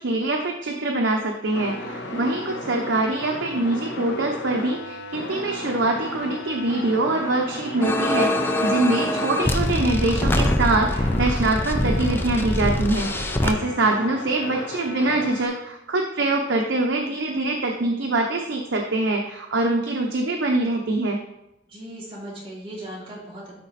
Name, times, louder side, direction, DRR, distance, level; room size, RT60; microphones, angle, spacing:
voice 1, 0.0-21.2, right 2 dB, 75° right, 2 dB, 0.9 m, -24 dB
sound 1, 1.5-15.5, left 2 dB, 70° left, 1.2 m, -35 dB
voice 2, 2.1-2.6 13.8-14.1 21.7-23.6, right 1 dB, 30° right, -6 dB, 2.8 m, -39 dB
sound 2, 7.8-13.5, left 1 dB, 10° left, 0.5 m, -24 dB
12.5 x 4.2 x 4.2 m, 0.89 s
head